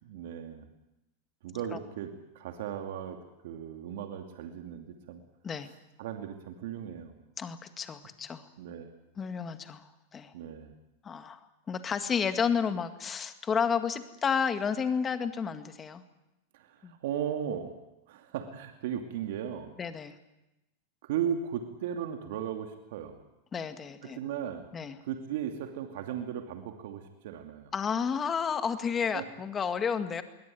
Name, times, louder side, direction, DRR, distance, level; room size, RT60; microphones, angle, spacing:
voice 1, 0.0-0.7 1.4-3.2 3.4-5.2 6.0-7.1 8.6-8.9 10.3-10.7 16.5-17.7 18.1-19.7 21.0-23.2 24.0-24.6 25.0-27.7 29.1-29.2, right 9 dB, 70° right, 5 dB, 2.6 m, -36 dB
voice 2, 7.4-8.4 9.2-9.8 10.1-10.3 11.0-16.0 16.8-17.0 19.8-20.2 23.5-24.2 24.7-25.0 27.7-30.2, left 6 dB, 20° left, 9 dB, 1.9 m, -31 dB
22.5 x 18.0 x 9.5 m, 0.94 s
supercardioid pair, 130°, 0 cm